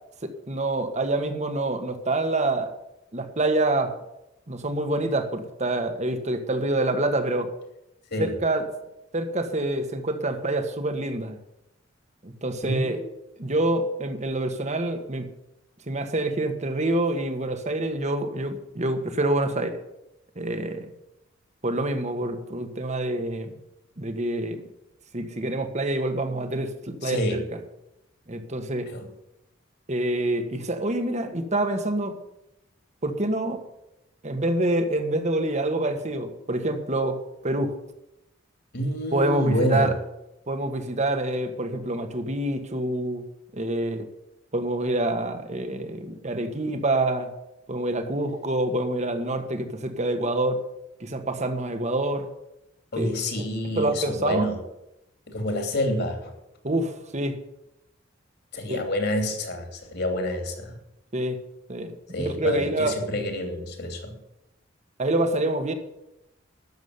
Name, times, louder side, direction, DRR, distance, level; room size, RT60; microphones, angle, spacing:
voice 1, 0.2-2.7 3.1-3.9 4.5-7.5 8.2-8.6 9.1-11.4 12.2-13.0 13.4-15.3 15.9-19.7 20.3-20.9 21.6-23.5 24.0-24.6 25.1-27.2 28.3-28.9 29.9-32.2 33.0-33.6 34.2-37.7 39.1-39.9 40.5-43.2 43.5-44.1 44.5-47.3 47.7-50.6 51.0-52.3 53.0-53.1 53.8-54.5 56.6-57.4 58.7-58.8 61.1-61.4 61.7-63.0 65.0-65.7, right 1 dB, 35° right, 8 dB, 1.5 m, -26 dB
voice 2, 12.6-13.1 27.0-27.4 28.9-29.1 38.7-39.9 52.9-54.6 55.3-56.3 58.5-60.7 62.1-64.2, left 1 dB, 55° left, 4 dB, 2.9 m, -28 dB
12.5 x 7.3 x 9.6 m, 0.88 s
head